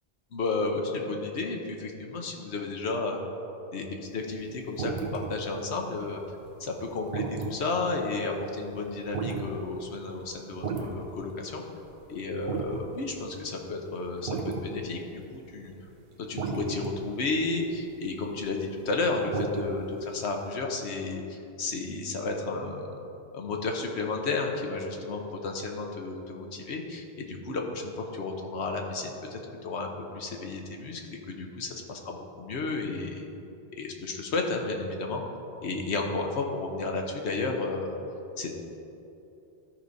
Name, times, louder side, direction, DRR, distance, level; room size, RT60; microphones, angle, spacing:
voice 1, 0.3-3.2 3.7-6.2 6.6-11.6 12.1-15.7 16.3-22.9 23.3-31.0 31.3-33.2 33.8-35.2 35.6-38.0 38.4-38.5, left 3 dB, 75° left, 2 dB, 1.2 m, -32 dB
sound 1, 4.1-4.5 4.8-5.4 5.8-11.2 11.5-11.6 11.9-12.8 13.1-13.2 13.4-13.5 14.1-14.7 15.0-19.0 19.3-19.9 20.2-20.3, right 4 dB, 50° right, 0.9 m, -34 dB
13.0 x 4.9 x 4.0 m, 2.9 s
omnidirectional pair, 1.1 m